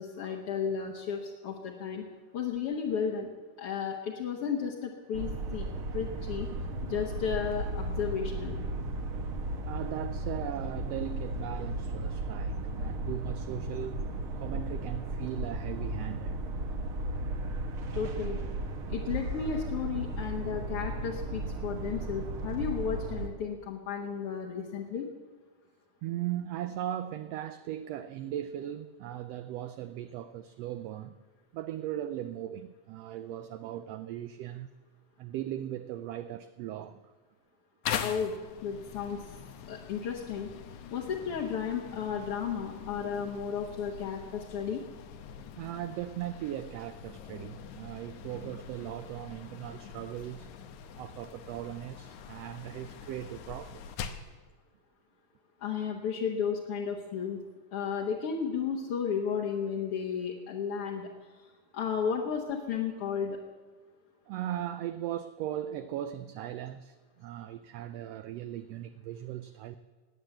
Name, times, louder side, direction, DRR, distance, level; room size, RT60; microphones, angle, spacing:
voice 1, 0.0-2.0 2.3-3.3 3.6-5.7 5.9-6.5 6.8-8.6 17.9-18.4 18.9-25.1 38.0-38.3 38.6-39.4 39.7-40.5 40.9-44.8 55.6-57.4 57.7-61.5 61.7-63.4, left 7 dB, 55° left, 2.0 m, -33 dB
sound 1, 5.1-23.3, right 1 dB, 55° right, 1.8 m, -35 dB
voice 2, 9.7-16.4 26.0-31.2 31.5-34.7 35.2-37.1 45.6-50.5 51.0-54.0 64.3-69.8, right 12 dB, 80° right, 1.5 m, -38 dB
sound 2, 37.8-54.3, left 8 dB, 80° left, 2.3 m, -43 dB
19.0 x 9.0 x 7.8 m
omnidirectional pair, 3.4 m